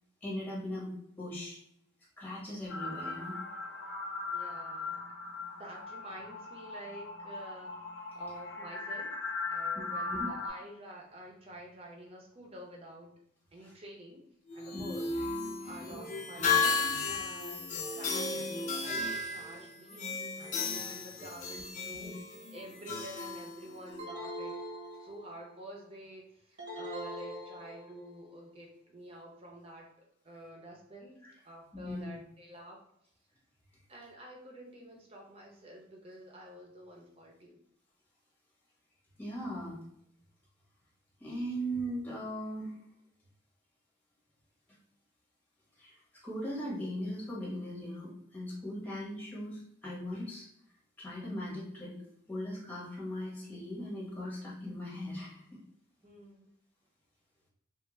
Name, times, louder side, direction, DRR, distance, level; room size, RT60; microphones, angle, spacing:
voice 1, 0.2-1.6 2.2-3.4 9.7-10.3 13.6-13.7 14.7-14.9 16.4-16.5 21.9-22.1 31.2-31.3 31.7-32.1 39.2-39.8 41.2-42.8 45.8-50.5 51.0-55.5, equal, 10° left, -5 dB, 0.9 m, -39 dB
sound 1, 2.7-10.5, left 3 dB, 75° left, 0.7 m, -39 dB
voice 2, 4.3-5.0 5.5-7.8 8.1-9.1 9.5-13.1 13.5-14.2 14.5-15.1 15.6-22.1 22.5-24.7 25.0-32.8 33.9-37.6 56.0-56.5, right 1 dB, 30° right, 0 dB, 0.6 m, -49 dB
sound 2, 14.5-24.0, left 4 dB, 40° left, 0.5 m, -34 dB
sound 3, 24.0-25.5 26.6-28.2, equal, 60° right, 0.8 m, -42 dB
3.3 x 2.1 x 3.1 m, 0.74 s
head